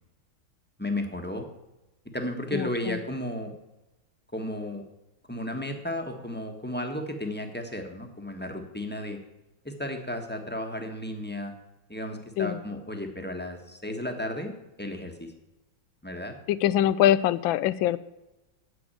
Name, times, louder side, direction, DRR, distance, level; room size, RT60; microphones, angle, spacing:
voice 1, 0.8-1.5 2.1-3.5 4.3-4.8 5.3-9.2 9.6-11.5 11.9-14.5 14.8-15.3 16.0-16.3, left 1 dB, 5° left, 3 dB, 1.1 m, -33 dB
voice 2, 2.5-3.0 12.4-12.6 16.5-18.0, left 12 dB, 80° left, 16 dB, 1.3 m, -23 dB
9.5 x 7.9 x 9.0 m, 1.0 s
omnidirectional pair, 2.1 m